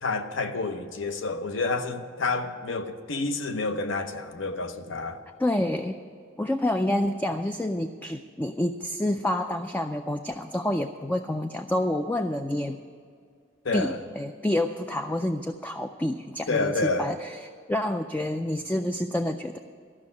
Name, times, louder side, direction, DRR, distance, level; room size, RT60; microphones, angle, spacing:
voice 1, 0.0-5.2 13.6-14.0 16.5-17.1, left 3 dB, 70° left, 9 dB, 0.8 m, -29 dB
voice 2, 5.4-6.0 6.4-12.8 13.7-17.3 17.7-19.6, left 1 dB, 10° left, 6 dB, 0.3 m, -28 dB
13.0 x 6.2 x 9.6 m, 2.1 s
head